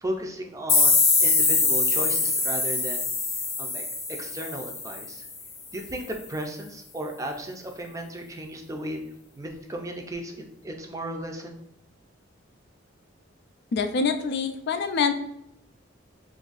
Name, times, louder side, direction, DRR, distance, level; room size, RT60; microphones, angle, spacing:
voice 1, 0.0-3.1 3.6-3.8 4.1-5.2 5.7-9.0 9.4-11.6, right 1 dB, 15° right, 3 dB, 0.4 m, -35 dB
sound 1, 0.7-5.4, left 4 dB, 30° left, 0.6 m, -23 dB
voice 2, 13.7-15.2, left 5 dB, 60° left, 8 dB, 0.3 m, -25 dB
2.7 x 2.5 x 3.9 m, 0.81 s
head